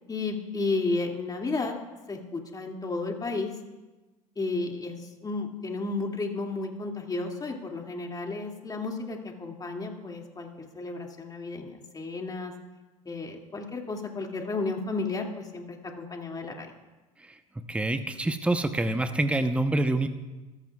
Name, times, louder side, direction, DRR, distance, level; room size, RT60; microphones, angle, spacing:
voice 1, 0.1-1.7 2.1-3.5 4.4-12.5 13.1-16.7, left 3 dB, 20° left, 1 dB, 2.4 m, -33 dB
voice 2, 17.2-20.1, right 2 dB, 5° right, 8 dB, 0.9 m, -27 dB
26.5 x 15.0 x 2.4 m, 1.2 s
hypercardioid pair, 80°, 18 cm